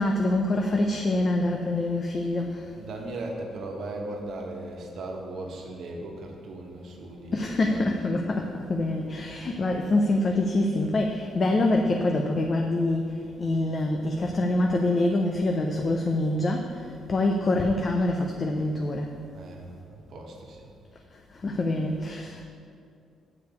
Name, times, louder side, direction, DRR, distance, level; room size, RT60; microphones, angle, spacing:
voice 1, 0.0-2.8 7.3-19.2 21.1-22.4, left 2 dB, 40° left, 2 dB, 0.6 m, -25 dB
voice 2, 2.7-8.1 19.3-20.7, right 2 dB, 65° right, 0 dB, 1.3 m, -38 dB
6.6 x 4.9 x 6.8 m, 2.4 s
cardioid pair, 90°, 0 cm